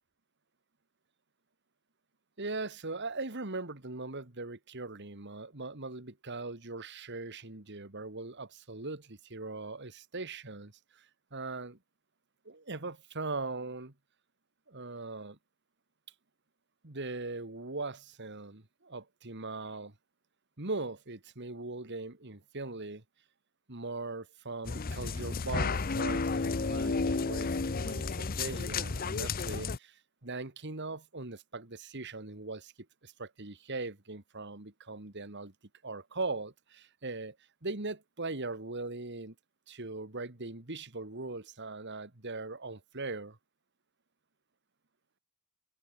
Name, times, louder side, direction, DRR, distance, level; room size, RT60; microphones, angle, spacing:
voice 1, 2.4-11.8 12.5-13.9 14.7-15.4 16.8-19.9 20.6-23.0 23.7-32.7 33.0-35.5 35.8-37.4 37.6-39.3 39.7-43.4, right 3 dB, 55° right, 2.2 m, -40 dB
sound 1, 24.6-29.8, left 4 dB, 40° left, 0.7 m, -32 dB
head